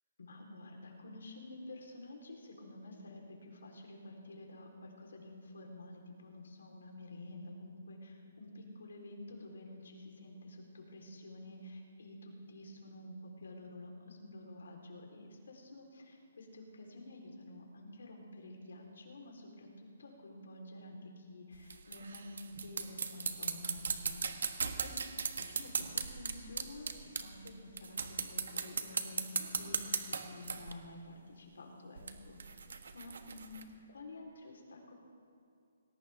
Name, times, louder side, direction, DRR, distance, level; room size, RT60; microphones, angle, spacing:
voice 1, 0.2-24.3 24.8-25.0 25.4-32.5 32.9-33.6 33.9-34.9, left 2 dB, 90° left, 1 dB, 3.8 m, -50 dB
sound 1, 21.5-27.5 27.8-30.7 32.0-33.6, right 5 dB, 70° right, 1.4 m, -38 dB
20.0 x 18.0 x 3.6 m, 2.5 s
hypercardioid pair, 175°, 0 cm